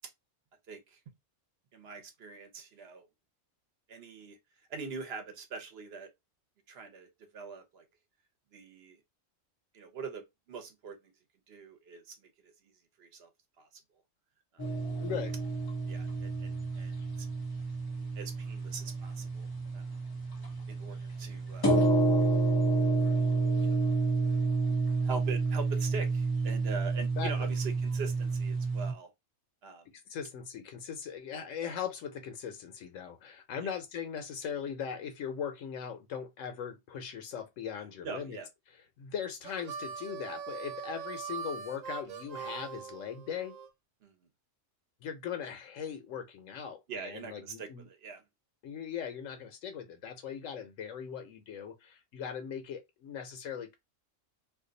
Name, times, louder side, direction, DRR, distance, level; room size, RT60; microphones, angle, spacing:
voice 1, 0.7-1.0 1.7-3.1 3.9-4.4 4.7-6.1 6.7-7.8 8.5-9.0 9.7-11.1 11.5-12.7 13.0-13.3 13.6-13.7 14.5-14.7 15.9-17.3 18.1-19.5 19.7-19.9 20.7-21.8 23.6-23.8 24.7-29.1 29.6-30.0 33.6-33.7 38.0-38.5 44.0-44.2 46.9-48.2, right 5 dB, 55° right, 1.0 m, -43 dB
sound 1, 14.6-28.9, right 3 dB, 25° left, 0.6 m, -30 dB
voice 2, 15.0-15.3 27.2-27.5 30.1-38.4 39.0-43.6 45.0-47.9 48.6-53.7, left 8 dB, 80° left, 1.0 m, -39 dB
Harmonica, 39.4-43.7, right 6 dB, 85° right, 1.1 m, -41 dB
2.6 x 2.3 x 3.8 m
omnidirectional pair, 1.3 m